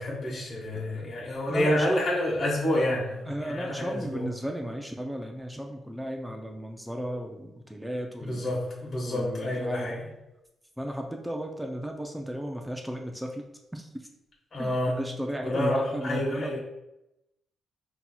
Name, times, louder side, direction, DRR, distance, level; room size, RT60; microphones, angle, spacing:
voice 1, 0.0-4.2 8.2-10.1 14.5-15.0 15.4-16.6, left 1 dB, 45° left, -4 dB, 1.2 m, -28 dB
voice 2, 0.7-1.1 1.5-2.0 3.3-8.5 9.1-9.9 10.8-13.4 13.7-13.9 14.6-16.5, equal, 5° right, 2 dB, 0.4 m, -34 dB
5.6 x 2.8 x 2.3 m, 0.90 s
cardioid pair, 100°, 0 cm